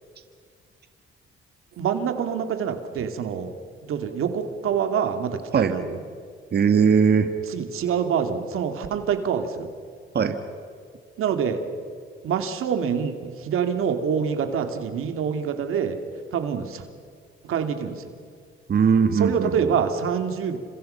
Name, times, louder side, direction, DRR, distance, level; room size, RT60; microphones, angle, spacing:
voice 1, 1.8-3.5 3.9-6.0 7.5-9.7 11.2-11.6 12.2-16.0 16.3-16.8 17.4-17.9 19.1-20.6, right 7 dB, 85° right, 7 dB, 2.6 m, -26 dB
voice 2, 6.5-7.3 10.1-10.4 18.7-19.8, right 6 dB, 50° right, 7 dB, 1.8 m, -20 dB
30.0 x 26.5 x 5.8 m, 2.1 s
cardioid pair, 100°, 21 cm